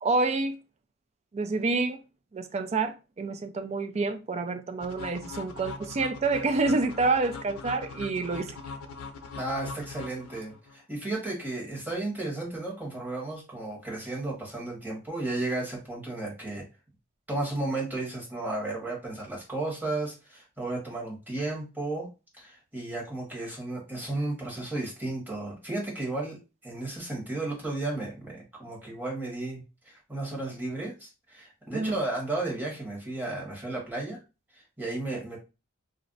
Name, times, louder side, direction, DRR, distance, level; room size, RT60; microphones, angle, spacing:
voice 1, 0.0-0.6 1.3-2.0 2.3-8.6 31.7-31.9, right 3 dB, 30° right, 0.3 m, -28 dB
sound 1, 4.8-10.8, left 4 dB, 85° left, 0.5 m, -41 dB
voice 2, 9.3-16.6 17.3-34.2 34.5-35.4, right 2 dB, 10° right, 1.2 m, -34 dB
2.4 x 2.1 x 3.8 m
head